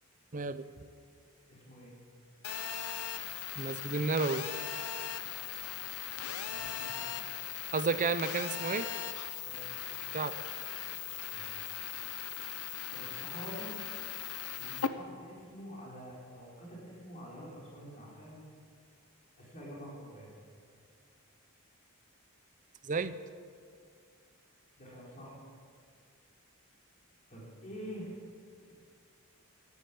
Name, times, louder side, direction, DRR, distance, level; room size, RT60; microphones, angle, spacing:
voice 1, 0.3-0.7 3.6-4.5 7.7-8.9 10.1-10.4 22.8-23.2, right 4 dB, 35° right, 13 dB, 0.6 m, -31 dB
voice 2, 1.5-1.9 6.4-7.1 9.4-9.7 11.3-11.6 12.9-13.8 14.6-18.4 19.4-20.3 24.8-25.4 27.3-28.2 28.7-28.8, equal, 35° left, -5 dB, 4.5 m, -47 dB
Telephone, 2.4-14.9, left 9 dB, 85° left, 0.8 m, -39 dB
14.0 x 11.0 x 8.5 m, 2.2 s
head